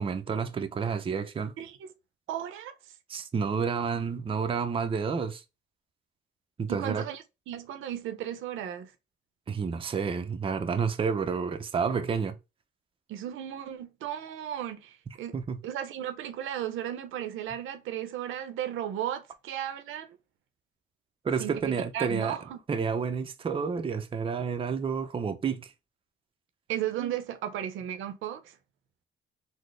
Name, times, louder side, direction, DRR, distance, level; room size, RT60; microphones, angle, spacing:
voice 1, 0.0-1.5 3.1-5.4 6.6-7.0 9.5-12.4 15.3-15.6 21.2-22.4 22.7-25.7 27.0-27.1, right 6 dB, 25° right, 0.5 m, -30 dB
voice 2, 1.6-1.9 2.3-2.7 6.7-8.9 13.1-15.4 15.6-20.2 21.4-22.6 26.7-28.6, right 10 dB, 80° right, 0.6 m, -35 dB
4.0 x 2.0 x 3.1 m
cardioid pair, 90°, 20 cm